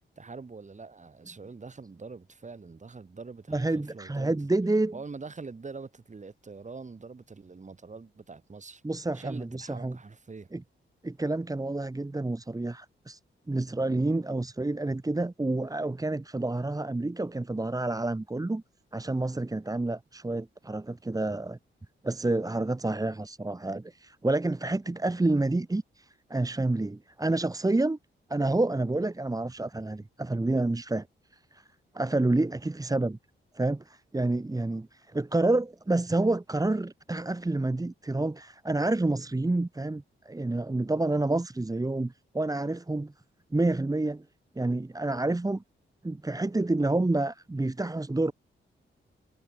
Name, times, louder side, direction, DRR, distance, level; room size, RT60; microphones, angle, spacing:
voice 1, 0.2-4.4 4.9-8.8 9.1-10.5, right 4 dB, 35° right, 5.1 m, -44 dB
voice 2, 3.5-4.9 8.8-10.0 10.5-10.6 11.0-13.2 13.5-18.6 18.9-21.6 22.0-28.0 28.3-31.1 31.5-31.6 31.9-33.2 33.5-43.1 43.5-44.2 44.6-45.6 46.0-48.3, right 2 dB, 15° right, 2.1 m, -28 dB
cardioid pair, 90°, 21 cm